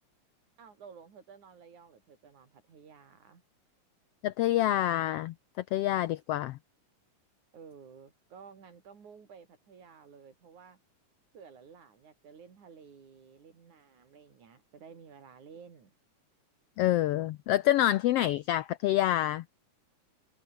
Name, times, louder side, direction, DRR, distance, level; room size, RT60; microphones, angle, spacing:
voice 1, 0.6-3.4 7.5-10.8 11.3-15.9, right 6 dB, 80° right, 5.0 m, -53 dB
voice 2, 4.2-5.3 5.7-6.6 16.8-19.4, left 14 dB, 80° left, 1.3 m, -27 dB
omnidirectional pair, 3.4 m